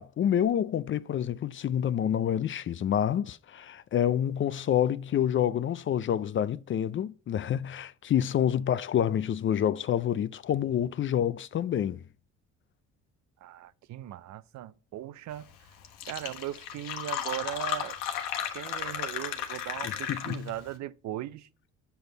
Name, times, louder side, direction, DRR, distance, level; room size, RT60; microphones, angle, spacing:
voice 1, 0.0-12.0 19.8-20.5, left 10 dB, 40° left, 0.4 m, -28 dB
voice 2, 13.4-15.5 16.1-18.0 18.5-21.5, right 13 dB, 60° right, 0.6 m, -38 dB
Fill (with liquid), 15.5-15.6 15.8-20.6, left 9 dB, 90° left, 1.2 m, -34 dB
7.9 x 7.1 x 3.9 m
supercardioid pair, 80°, 32 cm